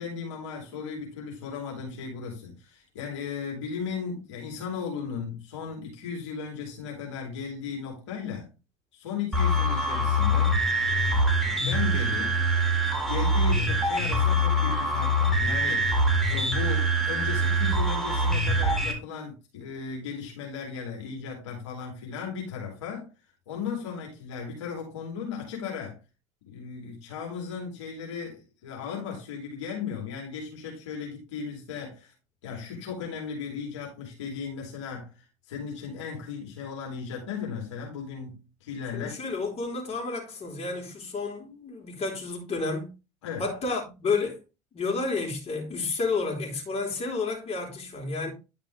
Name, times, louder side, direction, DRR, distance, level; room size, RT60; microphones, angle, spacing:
voice 1, 0.0-8.5 8.9-10.6 11.5-12.4 13.1-15.9 16.3-23.1 23.5-26.0 26.5-32.1 32.4-35.1 35.5-39.2 43.2-43.5, left 6 dB, 80° left, 2.9 m, -36 dB
sound 1, 9.3-18.9, equal, ahead, 3.7 m, -24 dB
voice 2, 38.9-42.9 43.4-44.4 44.7-48.3, left 4 dB, 40° left, 3.9 m, -31 dB
10.5 x 5.2 x 3.3 m
hypercardioid pair, 65°, 15 cm